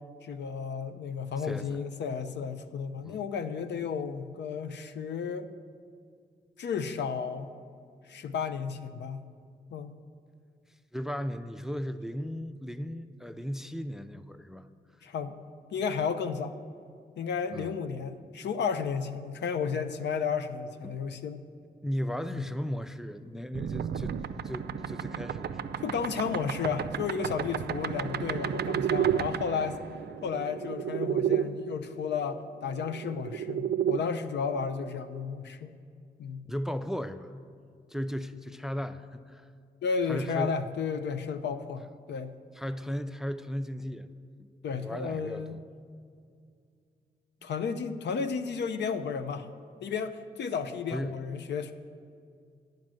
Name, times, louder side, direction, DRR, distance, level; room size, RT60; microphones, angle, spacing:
voice 1, 0.2-5.5 6.6-7.5 8.1-9.2 9.7-9.9 15.0-15.3 15.7-16.6 17.2-21.4 22.3-22.4 25.8-29.8 30.2-35.7 36.2-36.4 39.8-42.3 44.6-45.6 47.4-49.5 49.8-51.7, left 6 dB, 75° left, 9 dB, 0.5 m, -33 dB
voice 2, 1.4-1.8 3.1-3.2 10.9-14.7 17.5-17.7 20.8-21.0 21.8-24.2 24.4-25.8 36.5-37.3 37.9-39.4 40.1-40.5 42.6-44.1 44.8-45.6 50.9-51.2, equal, ahead, 11 dB, 0.4 m, -36 dB
sound 1, 23.5-31.4 32.7-34.0, right 9 dB, 65° right, 0.4 m, -32 dB
9.3 x 5.3 x 7.5 m, 2.3 s
cardioid pair, 50°, 18 cm